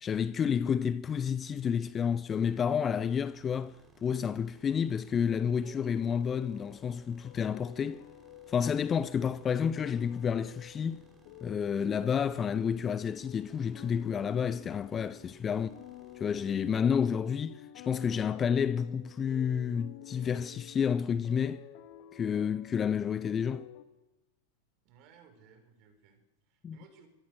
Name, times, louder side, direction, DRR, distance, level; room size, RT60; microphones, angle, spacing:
voice 1, 0.0-3.8 4.0-8.0 8.5-11.0 11.4-15.7 16.2-21.6 22.1-23.7 26.6-26.8, left 7 dB, 20° left, 0.8 m, -30 dB
sound 1, 2.4-16.5, right 3 dB, 15° right, 5.4 m, -61 dB
sound 2, 5.6-23.8, left 13 dB, 45° left, 2.2 m, -51 dB
voice 2, 24.8-27.1, right 6 dB, 40° right, 6.0 m, -60 dB
26.0 x 21.5 x 6.7 m
figure-of-eight pair, 90°, 0 cm